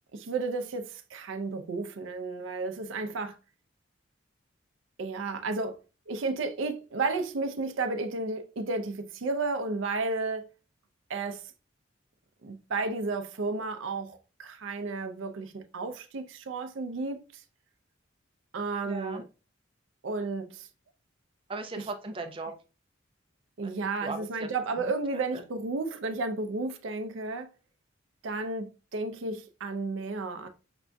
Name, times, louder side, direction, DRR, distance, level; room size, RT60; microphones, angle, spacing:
voice 1, 0.1-3.4 5.0-5.8 6.1-10.5 11.1-11.4 12.4-17.4 18.5-19.2 20.0-20.7 23.6-27.5 28.2-30.5, right 3 dB, 75° right, 0.5 m, -32 dB
voice 2, 18.8-19.2 21.5-22.5 23.6-24.5 24.8-24.9 25.3-25.4, right 3 dB, 25° right, 0.5 m, -38 dB
5.9 x 2.6 x 2.2 m
head